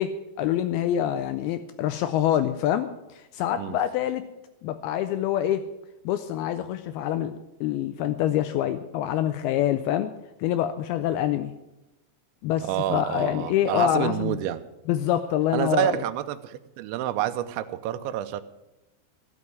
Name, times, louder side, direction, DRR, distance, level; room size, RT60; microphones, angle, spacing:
voice 1, 0.0-4.3 4.6-5.7 6.1-10.1 10.4-11.5 12.4-14.4 14.9-16.0, left 11 dB, 90° left, 2.2 m, -26 dB
voice 2, 12.6-14.6 15.5-18.4, right 13 dB, 85° right, 3.0 m, -28 dB
16.5 x 6.1 x 9.6 m
omnidirectional pair, 5.1 m